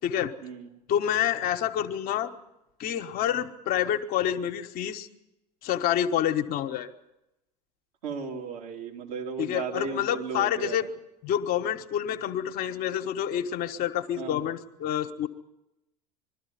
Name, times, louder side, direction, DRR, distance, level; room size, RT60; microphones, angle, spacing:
voice 1, 0.0-0.3 0.9-2.3 2.8-5.1 5.6-6.9 9.4-10.9 11.2-15.3, left 10 dB, 45° left, 6 dB, 1.4 m, -28 dB
voice 2, 8.0-10.9 12.1-12.3 14.2-14.5, right 5 dB, 70° right, -1 dB, 3.4 m, -35 dB
22.0 x 13.0 x 9.5 m, 0.91 s
figure-of-eight pair, 70°, 20 cm